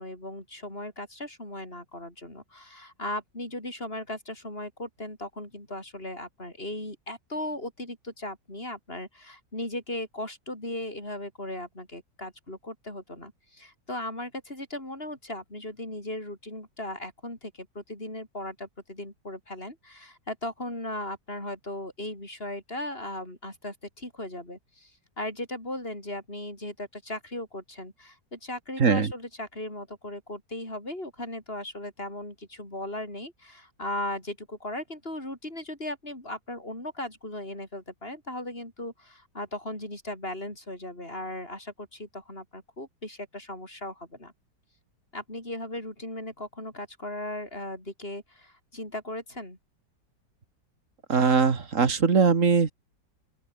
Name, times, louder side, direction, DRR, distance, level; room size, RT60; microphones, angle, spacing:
voice 1, 0.0-24.9 25.2-44.3 45.1-49.6, left 1 dB, 30° left, 7.9 m, -37 dB
voice 2, 28.8-29.1 51.1-52.7, right 5 dB, 45° right, 2.1 m, -21 dB
open air
omnidirectional pair, 1.9 m